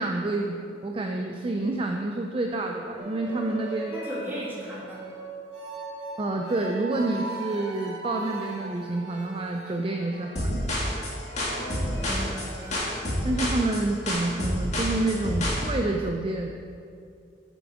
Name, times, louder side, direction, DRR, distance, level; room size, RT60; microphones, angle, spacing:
voice 1, 0.0-3.9 6.2-10.7 13.2-16.5, right 2 dB, 30° right, 2 dB, 0.4 m, -28 dB
sound 1, 3.0-13.0, right 2 dB, 90° right, 2.4 m, -39 dB
voice 2, 3.9-5.1 11.5-12.7, equal, 10° right, -7 dB, 2.2 m, -37 dB
sound 2, 10.4-15.6, left 1 dB, 40° left, 1.8 m, -28 dB
7.8 x 7.0 x 4.9 m, 2.4 s
head